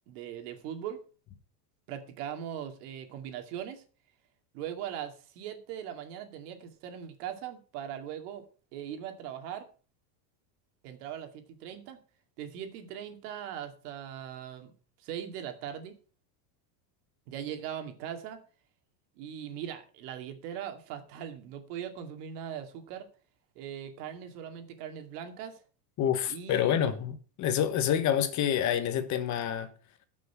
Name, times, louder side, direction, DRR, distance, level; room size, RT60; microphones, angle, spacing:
voice 1, 0.1-1.0 1.9-3.8 4.5-8.4 8.7-9.7 10.8-12.0 12.4-14.7 15.0-15.9 17.3-18.4 19.2-23.1 23.6-25.6 26.3-26.9, right 9 dB, 65° right, 2.5 m, -40 dB
voice 2, 26.0-29.7, left 9 dB, 35° left, 1.2 m, -28 dB
13.0 x 6.3 x 5.8 m
supercardioid pair, 155°, 50 cm